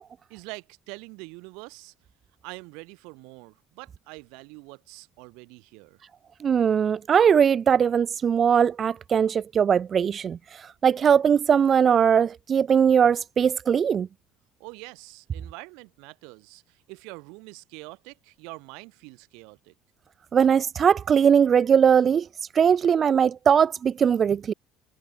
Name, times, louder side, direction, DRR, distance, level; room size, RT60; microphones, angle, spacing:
voice 1, 0.3-1.9 2.4-6.0 14.6-19.7, right 30 dB, 75° right, 7.9 m, -44 dB
voice 2, 6.4-14.1 20.3-22.3 22.5-24.5, right 7 dB, 45° right, 0.4 m, -20 dB
hypercardioid pair, 70°, 0 cm